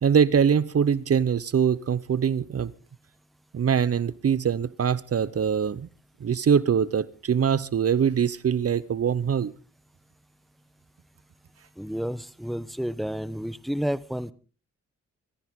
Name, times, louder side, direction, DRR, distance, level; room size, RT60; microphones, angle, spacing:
voice 1, 0.0-2.7 3.5-5.9 6.2-9.5, right 7 dB, 50° right, 20 dB, 0.9 m, -23 dB
voice 2, 11.8-14.3, equal, ahead, 17 dB, 1.0 m, -30 dB
26.0 x 14.0 x 3.7 m, 0.35 s
cardioid pair, 65°, 30 cm